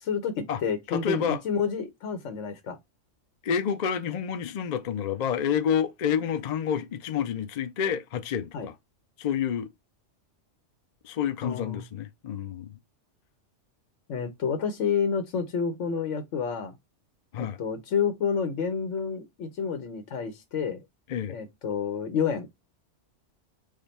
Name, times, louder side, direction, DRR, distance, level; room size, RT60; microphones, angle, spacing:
voice 1, 0.0-2.8 8.5-8.7 11.4-11.8 14.1-16.7 17.4-20.8 21.3-22.5, left 6 dB, 85° left, 1.2 m, -29 dB
voice 2, 0.9-1.4 3.4-8.7 9.2-9.7 11.0-12.7 17.3-17.6 21.1-21.4, left 8 dB, 55° left, 0.5 m, -29 dB
5.0 x 2.2 x 4.0 m
omnidirectional pair, 1.2 m